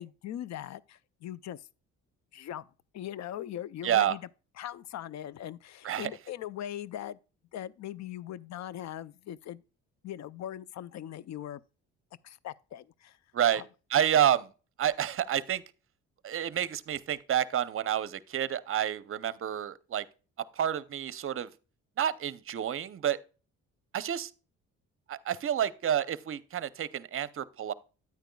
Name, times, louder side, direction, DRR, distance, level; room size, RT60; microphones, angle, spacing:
voice 1, 0.0-1.7 2.3-2.7 2.9-4.2 4.6-7.2 7.5-9.6 10.0-11.6 12.2-13.2 13.5-13.7, left 11 dB, 60° left, 0.5 m, -40 dB
voice 2, 3.8-4.2 5.8-6.1 13.3-13.6 13.9-14.5 14.8-15.6 16.2-20.1 20.6-21.5 22.0-23.2 23.9-24.3 25.1-27.7, right 10 dB, 45° right, 0.7 m, -29 dB
9.5 x 9.0 x 2.3 m
cardioid pair, 90°, 30 cm